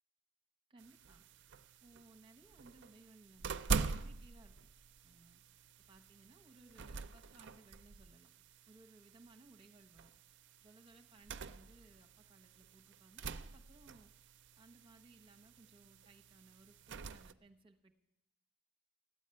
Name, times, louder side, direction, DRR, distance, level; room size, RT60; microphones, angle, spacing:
voice 1, 0.7-1.2 1.8-4.5 5.0-5.4 5.9-8.3 8.7-10.1 10.6-14.1 14.6-17.9, right 2 dB, 25° right, 4 dB, 1.2 m, -63 dB
sound 1, 0.8-17.3, right 4 dB, 60° right, 0.5 m, -45 dB
13.5 x 9.2 x 8.9 m, 0.83 s
head